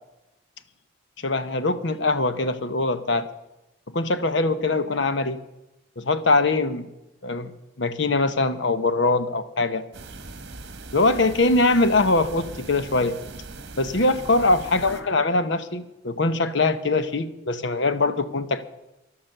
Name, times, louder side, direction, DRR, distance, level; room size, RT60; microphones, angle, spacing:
voice 1, 1.2-3.3 3.9-5.4 6.0-6.9 7.2-7.5 7.8-9.8 10.9-13.2 13.8-18.6, left 2 dB, 60° left, 13 dB, 0.9 m, -22 dB
sound 1, 9.9-15.0, right 3 dB, 55° right, 1.3 m, -40 dB
12.0 x 12.0 x 6.6 m, 0.94 s
head